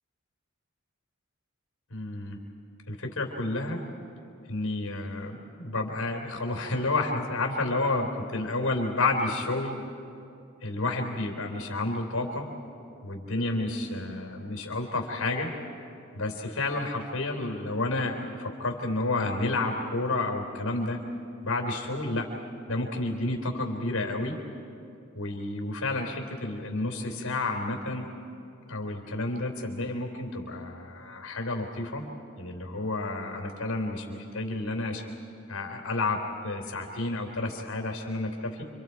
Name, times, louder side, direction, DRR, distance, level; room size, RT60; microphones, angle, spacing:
voice 1, 1.9-2.4 2.9-3.8 4.5-9.8 10.6-12.5 13.0-15.5 16.1-21.0 21.4-22.3 22.7-24.4 25.2-28.1 28.7-32.0 32.4-35.0 35.5-38.6, left 2 dB, 90° left, 3 dB, 3.4 m, -30 dB
30.0 x 25.5 x 4.6 m, 2.6 s
head